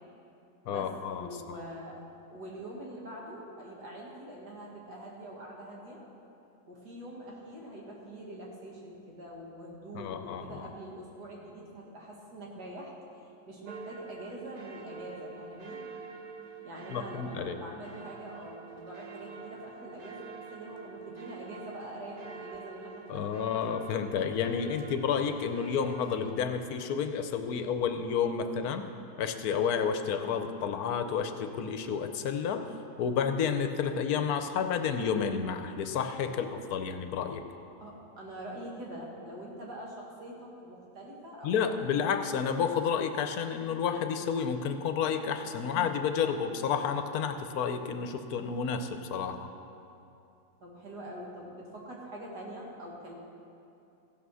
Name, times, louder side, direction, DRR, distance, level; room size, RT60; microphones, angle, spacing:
voice 1, 0.6-1.6 9.9-10.7 16.9-17.6 23.1-28.8 29.2-37.4 41.4-49.5, left 7 dB, 75° left, 8 dB, 1.1 m, -31 dB
voice 2, 1.2-2.0 2.3-6.0 6.7-12.9 13.5-15.8 16.6-23.3 37.8-42.1 50.6-53.1, right 1 dB, 90° right, -3 dB, 2.4 m, -44 dB
sound 1, 13.6-26.3, right 5 dB, 65° right, 0.4 m, -46 dB
15.0 x 5.8 x 6.2 m, 2.7 s
omnidirectional pair, 1.7 m